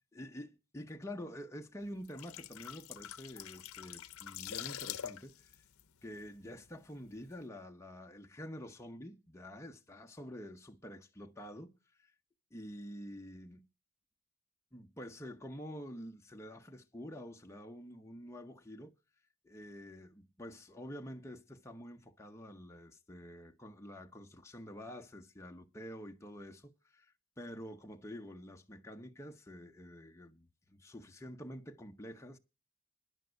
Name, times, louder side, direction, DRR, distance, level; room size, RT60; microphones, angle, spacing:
voice 1, 0.1-5.5 6.0-11.8 12.0-12.1 12.5-13.7 14.7-18.9 19.4-32.4, equal, 15° left, 0.8 m, -48 dB
sound 1, 1.9-6.7 7.0-7.2, left 10 dB, 65° left, 0.7 m, -45 dB
10.5 x 7.2 x 7.9 m
head